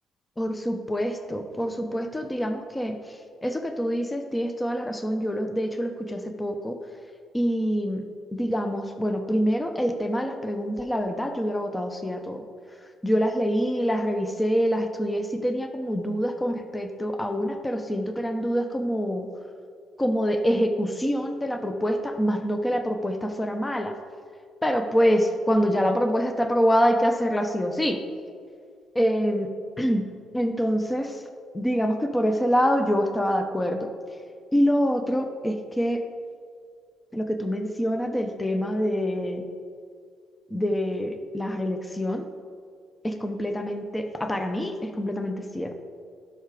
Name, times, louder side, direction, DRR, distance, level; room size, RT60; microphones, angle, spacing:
voice 1, 0.4-6.7 7.3-8.0 8.3-12.4 13.0-19.3 20.0-23.9 24.6-28.0 28.9-29.5 29.8-30.0 30.3-31.2 31.5-33.9 34.5-36.0 37.1-39.4 40.5-42.3 43.0-45.7, equal, 15° left, 6 dB, 0.8 m, -25 dB
11.5 x 5.7 x 4.9 m, 2.1 s
cardioid pair, 90°, 0 cm